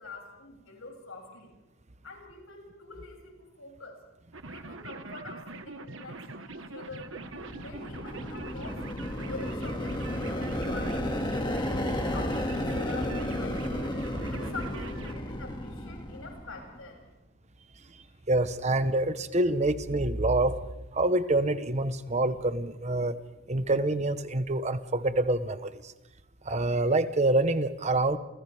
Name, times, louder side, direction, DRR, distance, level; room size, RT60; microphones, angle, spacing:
voice 1, 0.0-1.5 2.0-4.0 4.5-7.1 7.6-11.5 12.1-13.9 14.3-17.1 18.0-18.1, left 3 dB, 75° left, 0 dB, 7.4 m, -45 dB
sound 1, 4.3-15.2, right 2 dB, 65° right, 1.5 m, -43 dB
sound 2, 7.0-16.8, left 1 dB, 20° left, 2.2 m, -33 dB
voice 2, 18.3-20.6 20.9-23.2 23.5-25.9 26.4-28.2, right 2 dB, 30° right, 11 dB, 1.1 m, -26 dB
30.0 x 28.5 x 3.6 m, 1.1 s
head